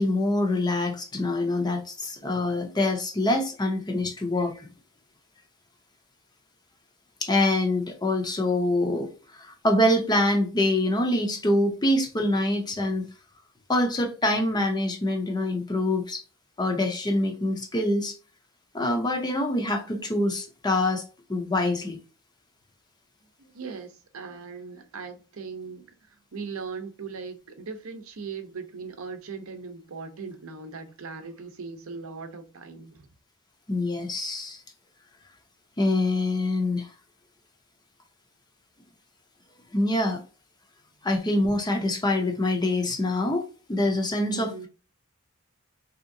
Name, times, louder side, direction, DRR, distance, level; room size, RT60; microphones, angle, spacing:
voice 1, 0.0-4.7 7.2-13.0 13.7-16.2 16.6-18.1 18.7-21.0 21.3-22.0 33.7-34.6 35.8-36.9 39.7-40.2 41.0-44.7, left 1 dB, 20° left, 0.5 m, -25 dB
voice 2, 23.4-33.1 44.3-44.7, right 5 dB, 65° right, 0.6 m, -39 dB
3.4 x 2.8 x 2.6 m
head